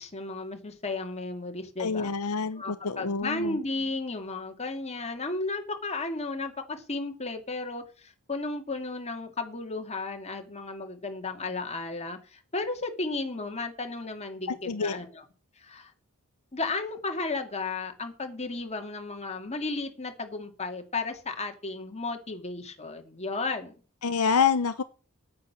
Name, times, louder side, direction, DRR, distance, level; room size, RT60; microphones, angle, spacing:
voice 1, 0.0-15.2 15.6-15.9 16.5-23.8, left 3 dB, 30° left, 2.3 m, -34 dB
voice 2, 1.8-3.6 14.5-15.0 24.0-24.8, left 5 dB, 75° left, 0.8 m, -27 dB
9.6 x 8.7 x 7.3 m
head